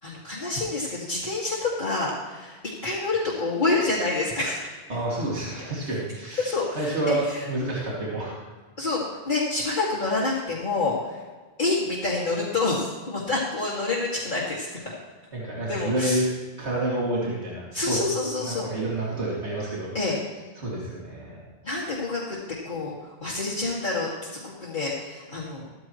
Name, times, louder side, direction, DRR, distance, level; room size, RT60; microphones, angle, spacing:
voice 1, 0.0-4.7 6.4-7.5 8.8-11.2 11.6-14.9 15.7-16.2 17.7-18.7 19.9-20.2 21.6-22.4 22.6-25.6, left 3 dB, 45° left, -8 dB, 2.6 m, -28 dB
voice 2, 4.9-8.5 15.3-16.3 16.6-18.0 18.4-20.1 20.6-21.4, right 1 dB, 80° right, -6 dB, 3.0 m, -29 dB
16.0 x 14.0 x 3.2 m, 1.4 s
omnidirectional pair, 1.1 m